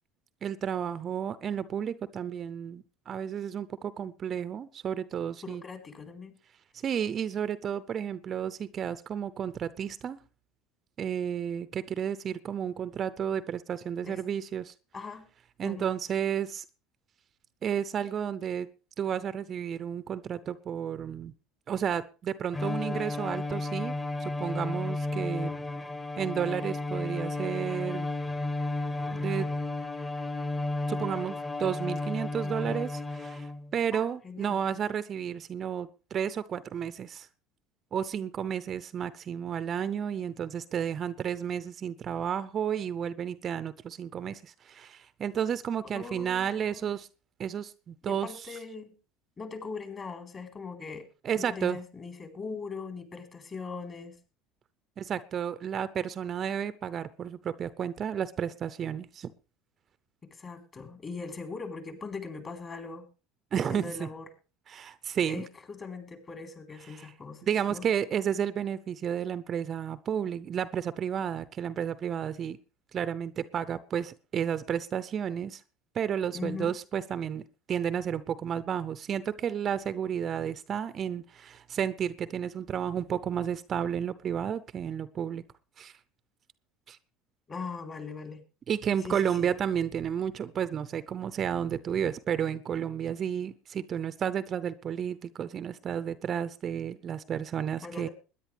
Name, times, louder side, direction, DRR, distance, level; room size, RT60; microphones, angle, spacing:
voice 1, 0.4-5.6 6.8-10.2 11.0-14.7 15.6-16.6 17.6-18.7 19.0-21.3 21.7-23.9 24.2-25.5 26.2-28.1 29.1-29.5 30.9-32.9 33.2-37.3 37.9-47.1 47.4-48.3 51.2-51.8 55.0-59.3 63.5-64.1 64.7-65.4 66.9-67.1 67.4-72.6 72.9-75.6 75.9-85.4 85.8-85.9 86.9-87.0 88.7-98.1, right 8 dB, 40° right, 15 dB, 0.6 m, -32 dB
voice 2, 5.4-6.4 14.0-14.2 14.9-15.3 15.6-15.9 32.7-32.8 33.9-34.6 45.9-46.9 48.1-48.9 49.4-51.1 51.4-54.2 60.2-63.1 63.5-64.2 65.2-67.9 76.3-76.8 87.5-88.4 89.0-89.5 97.8-98.1, left 4 dB, 35° left, 5 dB, 3.9 m, -40 dB
Bowed string instrument, 22.5-33.7, left 2 dB, 20° left, 1.4 m, -33 dB
21.5 x 10.0 x 3.4 m, 0.33 s
hypercardioid pair, 75°, 0 cm